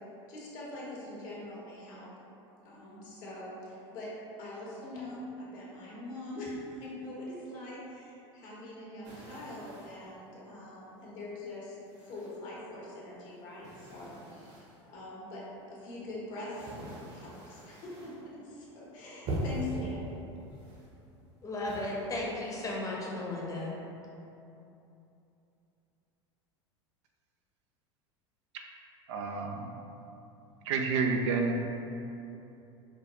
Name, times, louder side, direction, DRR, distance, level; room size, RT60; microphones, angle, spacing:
voice 1, 0.3-2.1 2.6-4.1 4.4-11.8 12.0-16.7 17.1-20.0, left 1 dB, 60° left, -6 dB, 1.2 m, -43 dB
sound 1, 9.0-10.1 10.8-10.9 11.8-12.7 13.0-14.8 15.6-18.2 18.6-18.9 19.2-19.9 20.5-21.3 21.6-22.6, right 1 dB, 50° right, 1.0 m, -42 dB
voice 2, 21.4-23.7, left 2 dB, 20° left, -4 dB, 0.9 m, -35 dB
voice 3, 29.1-29.7 30.7-31.6, right 4 dB, 70° right, 2 dB, 0.4 m, -29 dB
5.0 x 2.2 x 3.0 m, 2.9 s
hypercardioid pair, 85°, 15 cm